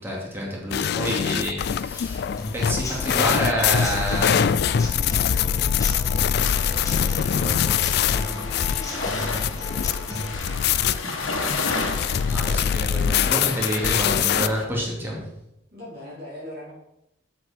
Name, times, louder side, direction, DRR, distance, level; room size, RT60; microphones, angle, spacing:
voice 1, 0.0-2.3 2.5-5.9 7.0-8.5 8.9-9.7 12.3-15.3, equal, 10° right, -4 dB, 2.4 m, -30 dB
sound 1, 0.7-14.5, left 8 dB, 55° left, 0.3 m, -24 dB
Human voice / Acoustic guitar / Drum, 2.4-10.4, left 1 dB, 15° left, 1.6 m, -35 dB
sound 2, 6.3-14.6, left 3 dB, 80° left, 1.4 m, -33 dB
voice 2, 15.7-16.7, left 1 dB, 50° right, -6 dB, 3.9 m, -39 dB
8.2 x 7.6 x 4.4 m, 0.84 s
head